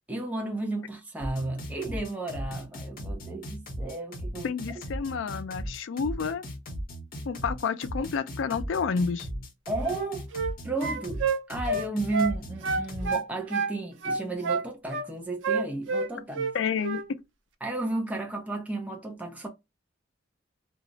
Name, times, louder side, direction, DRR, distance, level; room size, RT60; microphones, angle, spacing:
voice 1, 0.1-4.8 9.7-10.3 10.6-16.6 17.6-19.5, right 2 dB, 10° right, 0.5 m, -33 dB
sound 1, 1.2-13.2, equal, 50° left, 0.8 m, -37 dB
voice 2, 4.4-6.4 7.3-9.3 16.5-17.0, left 5 dB, 85° left, 0.4 m, -29 dB
sound 2, 9.8-10.6 10.8-12.4 12.6-13.8 14.0-15.1 15.4-16.5 16.8-17.1, right 4 dB, 85° right, 0.5 m, -29 dB
2.3 x 2.0 x 3.8 m
head